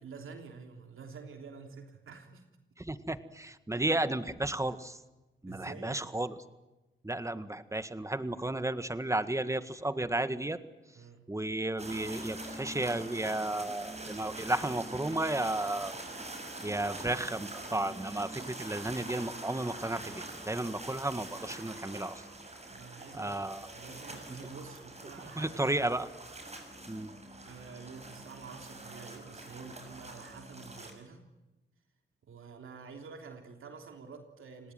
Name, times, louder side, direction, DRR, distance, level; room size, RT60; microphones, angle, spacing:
voice 1, 0.0-2.5 3.7-3.8 5.5-6.1 10.9-11.3 22.7-26.0 27.4-31.3 32.2-34.7, right 5 dB, 85° right, 4 dB, 3.3 m, -48 dB
voice 2, 2.8-5.0 5.4-6.4 7.0-10.6 11.3-15.9 16.6-22.2 23.1-23.7 25.4-26.1 26.9-27.1, right 1 dB, 15° right, 11 dB, 1.8 m, -33 dB
sound 1, 11.8-30.9, right 2 dB, 30° right, 6.5 m, -44 dB
29.5 x 19.0 x 9.3 m, 1.1 s
cardioid pair, 65°, 21 cm